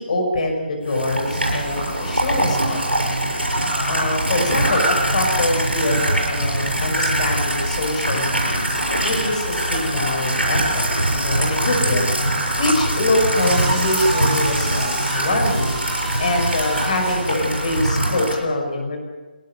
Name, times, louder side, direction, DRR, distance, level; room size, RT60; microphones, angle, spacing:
voice 1, 0.0-2.8 3.9-10.9 11.1-12.2 12.6-15.7 16.2-19.0, left 1 dB, 45° left, 2 dB, 6.1 m, -24 dB
sound 1, 0.9-18.3, right 1 dB, 85° right, 7.7 m, -22 dB
sound 2, 1.3-17.8, right 2 dB, 10° right, 3.8 m, -34 dB
22.0 x 18.5 x 6.6 m, 1.2 s
figure-of-eight pair, 145°, 6 cm